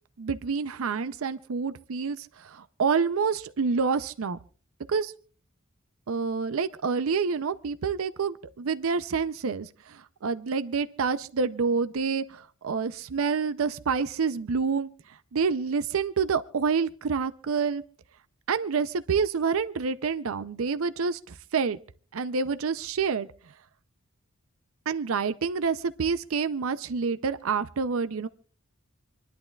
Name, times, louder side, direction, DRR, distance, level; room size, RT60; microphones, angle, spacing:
voice 1, 0.2-4.4 4.9-5.1 6.1-14.9 15.3-17.8 18.5-21.8 22.1-23.3 24.9-28.3, right 5 dB, 70° right, 12 dB, 0.5 m, -28 dB
27.5 x 11.0 x 2.3 m, 0.42 s
head